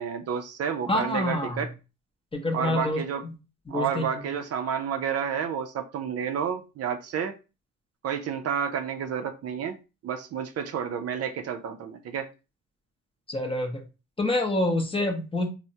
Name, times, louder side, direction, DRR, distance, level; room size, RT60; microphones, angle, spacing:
voice 1, 0.0-1.7 2.5-3.2 3.7-7.4 8.0-9.8 10.0-12.3, right 7 dB, 55° right, 0.5 m, -30 dB
voice 2, 0.9-1.7 2.3-3.4 3.7-4.1 13.3-13.8 14.2-15.5, left 1 dB, 20° left, 0.7 m, -27 dB
3.4 x 2.1 x 2.7 m
cardioid pair, 90°, 30 cm